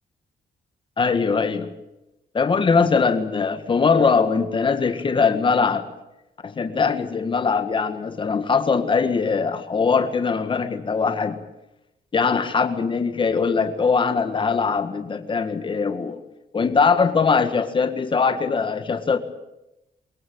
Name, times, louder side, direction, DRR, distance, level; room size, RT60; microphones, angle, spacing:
voice 1, 1.0-1.7 2.3-5.9 6.4-11.4 12.1-16.2 16.5-19.2, left 5 dB, 30° left, 9 dB, 1.8 m, -21 dB
22.5 x 22.0 x 8.7 m, 0.90 s
wide cardioid pair, 165°, 17 cm